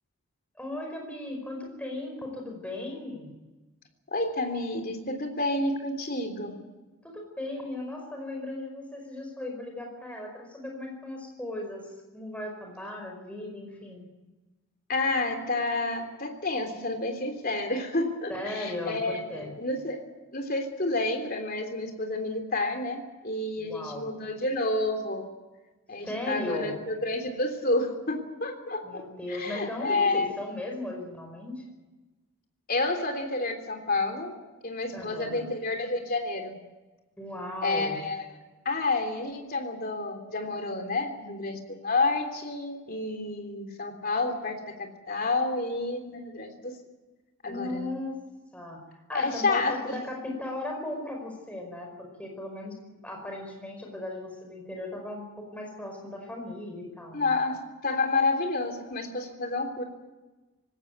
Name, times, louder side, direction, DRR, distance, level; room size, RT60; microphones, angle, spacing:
voice 1, 0.6-3.3 7.0-14.1 18.3-19.5 23.6-24.1 26.0-26.8 28.8-31.8 34.9-35.4 37.2-38.0 47.5-48.2 48.5-48.8 49.1-57.4, left 1 dB, 5° left, 1 dB, 5.0 m, -37 dB
voice 2, 4.1-6.5 14.9-20.0 20.3-25.3 25.9-29.0 29.3-30.3 32.7-34.3 34.6-36.5 37.6-38.4 38.6-44.6 45.1-46.7 47.4-47.9 49.1-50.0 57.1-59.8, left 2 dB, 40° left, 4 dB, 3.4 m, -29 dB
20.5 x 17.5 x 9.3 m, 1.2 s
head